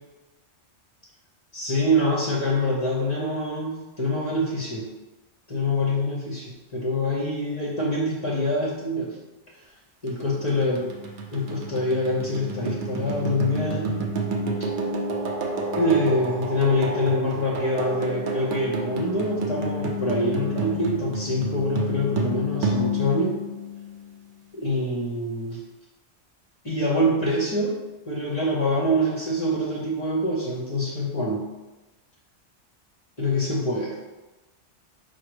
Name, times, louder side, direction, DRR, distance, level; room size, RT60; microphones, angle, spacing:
voice 1, 1.5-4.9 5.5-9.2 10.0-10.9 11.3-14.1 15.7-23.3 24.6-25.6 26.6-27.8 28.1-31.5 33.2-34.0, left 1 dB, 35° left, -4 dB, 0.7 m, -25 dB
sound 1, 10.1-24.3, right 1 dB, 55° right, 0.7 m, -30 dB
5.0 x 2.2 x 4.7 m, 1.1 s
omnidirectional pair, 1.2 m